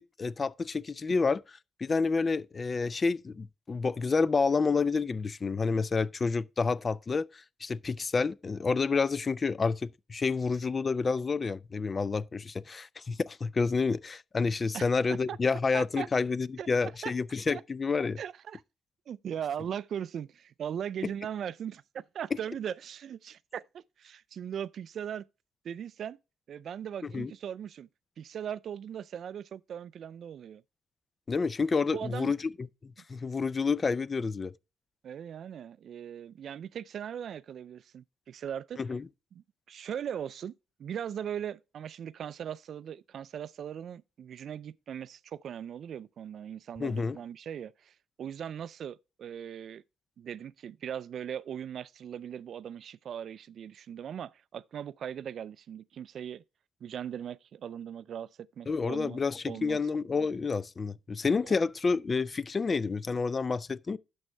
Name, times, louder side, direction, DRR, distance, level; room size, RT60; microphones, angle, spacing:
voice 1, 0.0-1.4 1.8-18.2 27.0-27.3 31.3-34.5 38.8-39.0 46.8-47.2 58.7-64.0, left 4 dB, 30° left, 0.4 m, -29 dB
voice 2, 14.7-15.4 15.7-16.1 16.6-17.1 17.5-17.6 18.2-18.6 19.1-25.2 25.6-26.2 26.5-27.9 28.2-30.6 31.9-32.3 35.0-38.8 39.3-40.5 40.8-49.8 50.2-56.4 56.8-59.2 59.5-59.8 61.4-61.5, right 9 dB, 55° right, 0.3 m, -39 dB
10.5 x 6.3 x 3.3 m
cardioid pair, 105°, 0 cm